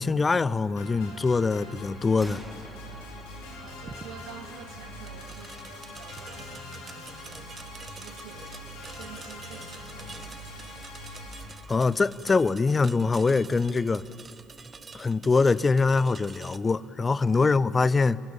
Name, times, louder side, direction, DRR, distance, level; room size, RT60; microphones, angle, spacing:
voice 1, 0.0-2.4 11.7-14.0 14.9-18.2, left 4 dB, 25° left, 0.6 m, -23 dB
sound 1, 0.8-11.4, left 1 dB, 70° left, 4.3 m, -43 dB
sound 2, 2.2-5.7, right 1 dB, 5° right, 2.8 m, -50 dB
voice 2, 3.6-7.5 7.9-8.5 8.9-10.5 17.4-17.7, right 8 dB, 65° right, 2.2 m, -48 dB
sound 3, 3.9-16.6, right 5 dB, 30° right, 1.0 m, -48 dB
25.0 x 22.5 x 8.9 m
figure-of-eight pair, 50°, 0 cm